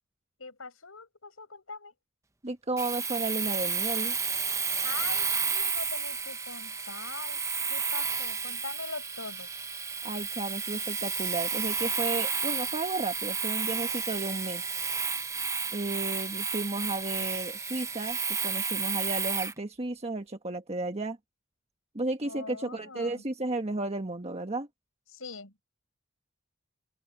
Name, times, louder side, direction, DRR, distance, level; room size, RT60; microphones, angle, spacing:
voice 1, 0.4-1.9 4.8-7.4 7.7-9.5 22.2-23.2 25.1-25.5, left 4 dB, 90° left, 6.3 m, -42 dB
voice 2, 2.4-4.1 10.0-14.6 15.7-21.2 21.9-24.7, right 2 dB, 30° right, 1.5 m, -33 dB
Domestic sounds home sounds, 2.8-19.6, right 5 dB, 15° right, 0.7 m, -31 dB
open air
head